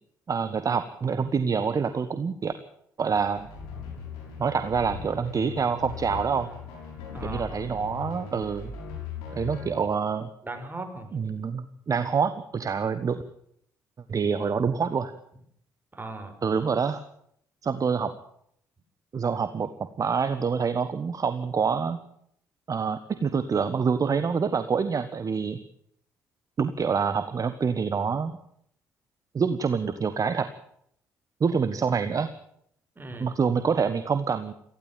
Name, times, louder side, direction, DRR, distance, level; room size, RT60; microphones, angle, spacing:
voice 1, 0.3-2.5 3.0-3.5 4.4-6.5 7.2-8.7 9.3-10.3 11.1-13.2 14.1-15.1 16.4-17.0 17.6-18.1 19.1-22.0 22.7-25.6 26.6-28.3 29.3-30.5 31.4-32.3 33.2-34.5, right 6 dB, 40° right, 12 dB, 1.4 m, -26 dB
sound 1, 3.1-9.7, left 6 dB, 75° left, 6.2 m, -39 dB
voice 2, 7.1-7.6 10.4-11.2 15.9-16.3 33.0-33.4, right 2 dB, 20° right, 6 dB, 6.0 m, -38 dB
18.5 x 15.5 x 9.3 m, 0.69 s
hypercardioid pair, 45°, 9 cm